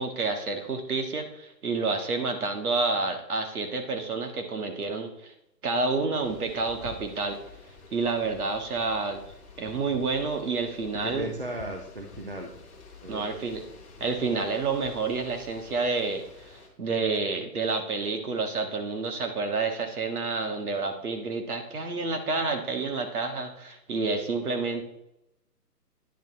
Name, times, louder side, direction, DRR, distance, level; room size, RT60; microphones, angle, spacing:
voice 1, 0.0-5.3 5.6-7.4 7.9-9.2 9.6-11.3 13.1-13.6 14.0-24.9, right 3 dB, 60° right, 4 dB, 1.5 m, -29 dB
sound 1, 6.2-16.7, left 4 dB, 20° left, 1.2 m, -49 dB
voice 2, 11.0-12.6 13.0-13.5, right 1 dB, 35° right, 2 dB, 0.5 m, -36 dB
10.0 x 3.5 x 4.2 m, 0.79 s
hypercardioid pair, 165°, 49 cm